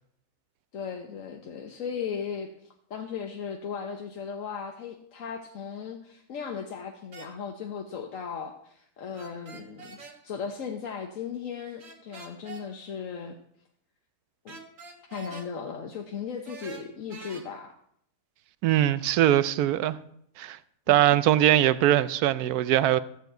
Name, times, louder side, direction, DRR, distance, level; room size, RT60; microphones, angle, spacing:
voice 1, 0.7-10.0 10.2-13.4 14.4-14.6 15.1-17.7 20.9-21.2, left 6 dB, 65° left, 1.2 m, -37 dB
sound 1, 7.1-7.3 9.1-10.2 11.8-12.7 14.5-15.5 16.5-17.4, right 4 dB, 60° right, 1.8 m, -44 dB
voice 2, 18.6-20.0 20.4-20.6 20.9-23.0, right 12 dB, 85° right, 1.1 m, -21 dB
14.5 x 4.8 x 7.9 m
omnidirectional pair, 1.6 m